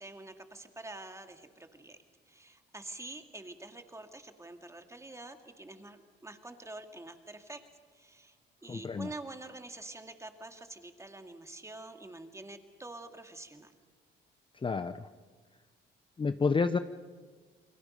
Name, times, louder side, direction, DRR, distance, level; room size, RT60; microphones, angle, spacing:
voice 1, 0.0-2.0 2.3-7.6 7.9-8.4 8.6-13.7, right 2 dB, 15° right, 6 dB, 2.1 m, -47 dB
voice 2, 8.7-9.1 14.5-15.1 16.2-16.8, left 4 dB, 25° left, 11 dB, 0.7 m, -30 dB
29.0 x 22.0 x 5.4 m, 1.5 s
cardioid pair, 90°, 20 cm